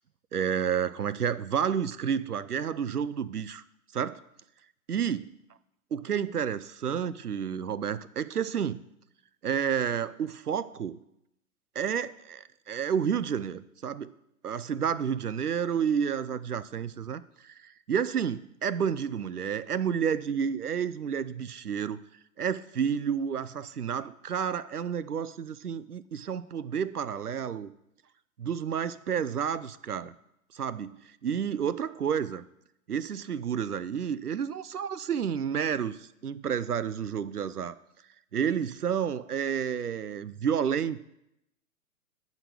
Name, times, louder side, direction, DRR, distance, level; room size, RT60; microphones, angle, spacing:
voice 1, 0.3-3.6 3.9-4.2 4.9-5.3 5.9-8.8 9.4-11.0 11.7-14.1 14.4-22.0 22.4-27.7 28.4-30.1 30.5-32.4 32.9-37.8 38.3-41.0, right 7 dB, 90° right, 17 dB, 0.6 m, -30 dB
11.5 x 4.1 x 6.6 m, 0.82 s
figure-of-eight pair, 115°, 44 cm